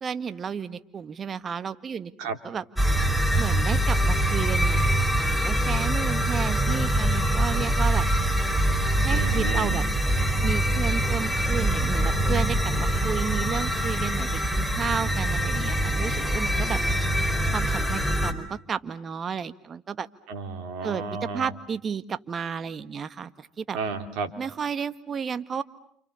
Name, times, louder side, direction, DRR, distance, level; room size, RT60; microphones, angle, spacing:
voice 1, 0.0-2.1 2.4-2.6 3.4-8.0 9.0-9.8 10.4-16.8 17.5-20.1 20.8-23.8 24.4-25.6, right 6 dB, 35° right, 12 dB, 1.6 m, -32 dB
sound 1, 2.8-18.3, right 1 dB, 5° right, 4.3 m, -24 dB
voice 2, 9.1-9.8 20.3-21.5 23.7-24.3, right 4 dB, 65° right, 7 dB, 3.4 m, -32 dB
29.0 x 28.5 x 7.0 m, 0.67 s
hypercardioid pair, 75°, 0 cm